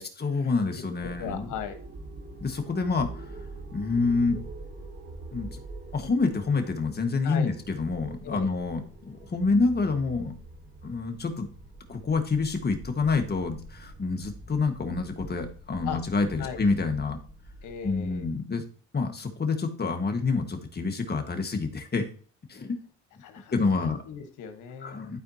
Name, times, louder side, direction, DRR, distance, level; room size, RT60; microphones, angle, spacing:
voice 1, 0.2-1.5 2.4-3.3 3.7-4.4 5.3-5.6 5.9-8.8 9.1-10.3 10.8-11.5 11.9-17.2 17.8-18.6 18.9-22.1 22.5-22.8 23.5-24.0 24.8-25.2, left 4 dB, 35° left, 5 dB, 1.5 m, -27 dB
voice 2, 1.0-1.8 7.2-7.5 8.2-8.5 15.8-16.0 16.4-16.6 17.6-18.3 23.2-23.7 24.1-25.2, left 7 dB, 90° left, 7 dB, 1.3 m, -37 dB
sound 1, 1.0-18.3, right 2 dB, 35° right, 1.3 m, -44 dB
12.0 x 4.4 x 2.8 m, 0.42 s
cardioid pair, 90°, 30 cm